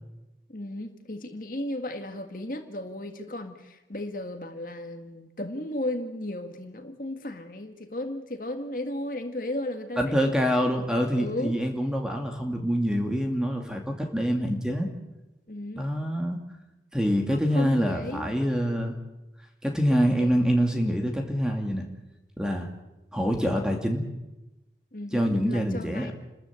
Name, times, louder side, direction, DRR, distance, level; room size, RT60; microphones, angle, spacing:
voice 1, 0.5-10.5 11.2-11.6 15.5-15.8 17.3-18.3 19.9-20.6 24.9-26.1, left 1 dB, 50° left, 5 dB, 1.9 m, -35 dB
voice 2, 10.0-14.9 15.8-16.4 16.9-19.0 19.6-21.8 22.4-22.7 23.1-24.0 25.1-26.1, equal, 5° right, 2 dB, 2.6 m, -25 dB
29.5 x 13.5 x 8.3 m, 1.0 s
head